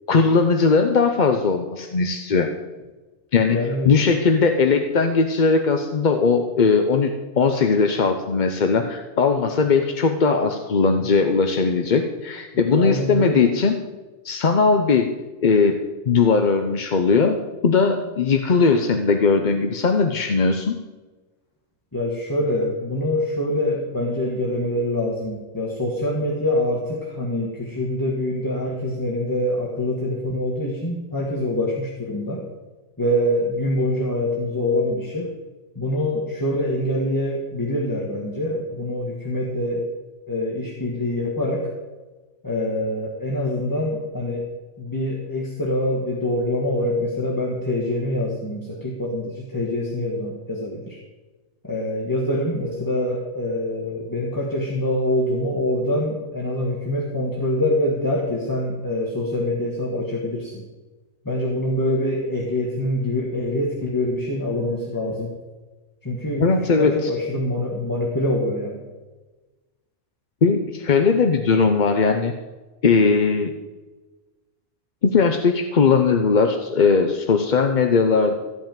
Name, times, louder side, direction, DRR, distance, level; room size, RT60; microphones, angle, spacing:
voice 1, 0.1-2.5 3.3-3.6 3.8-7.1 7.4-13.8 14.2-15.2 15.4-17.4 17.6-20.8 66.4-67.1 70.4-72.3 72.8-73.5 75.0-78.3, left 4 dB, 40° left, 5 dB, 0.8 m, -19 dB
voice 2, 3.5-3.9 12.5-13.5 21.9-32.5 33.0-35.3 35.7-39.9 40.3-41.7 42.4-44.5 44.8-51.0 51.6-60.6 61.2-65.3 66.0-66.4 66.8-68.9, left 1 dB, 15° left, -2 dB, 1.5 m, -25 dB
14.5 x 5.6 x 9.0 m, 1.2 s
omnidirectional pair, 1.5 m